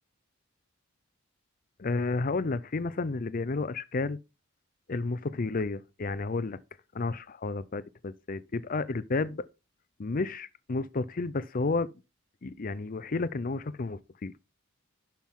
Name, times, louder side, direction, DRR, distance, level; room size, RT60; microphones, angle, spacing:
voice 1, 1.8-4.2 4.9-6.6 6.9-9.5 10.0-11.9 12.4-14.3, left 3 dB, 40° left, 0.5 m, -31 dB
11.5 x 5.9 x 3.7 m
head